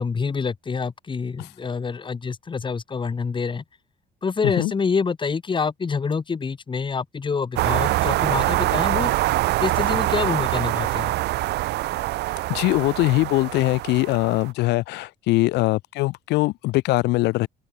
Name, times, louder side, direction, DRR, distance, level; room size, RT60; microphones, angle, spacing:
voice 1, 0.0-3.6 4.2-9.1 9.6-11.1, left 5 dB, 30° left, 3.9 m, -26 dB
sound 1, 7.6-14.5, right 17 dB, 80° right, 2.0 m, -24 dB
voice 2, 12.5-17.5, left 19 dB, 85° left, 1.3 m, -22 dB
open air
cardioid pair, 110°, 17 cm